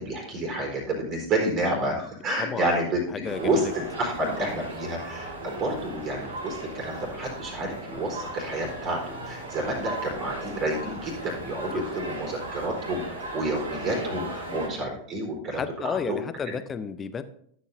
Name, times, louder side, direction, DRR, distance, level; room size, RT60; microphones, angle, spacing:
voice 1, 0.0-3.0 3.4-16.2, right 1 dB, 35° right, 0 dB, 4.0 m, -29 dB
voice 2, 2.4-3.7 7.9-8.0 9.6-9.8 11.7-11.9 12.2-12.4 14.5-14.6 15.5-17.2, left 6 dB, 20° left, 12 dB, 0.7 m, -33 dB
sound 1, 3.2-14.7, right 2 dB, 70° right, 2.8 m, -37 dB
14.0 x 8.2 x 2.7 m, 0.65 s
figure-of-eight pair, 90°, 0 cm